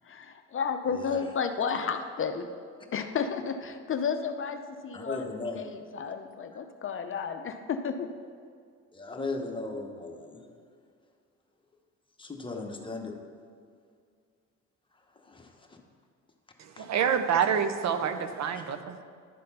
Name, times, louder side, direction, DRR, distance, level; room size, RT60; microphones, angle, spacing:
voice 1, 0.0-2.5 2.9-5.3 5.5-8.1, left 6 dB, 45° left, 7 dB, 0.6 m, -32 dB
voice 2, 4.9-5.6 8.9-10.5 12.2-13.1 15.2-15.8 16.8-16.9 18.5-18.6, left 3 dB, 15° left, 2 dB, 1.0 m, -37 dB
voice 3, 16.8-19.0, right 7 dB, 65° right, 8 dB, 0.6 m, -27 dB
11.0 x 4.2 x 5.5 m, 2.1 s
cardioid pair, 90°, 30 cm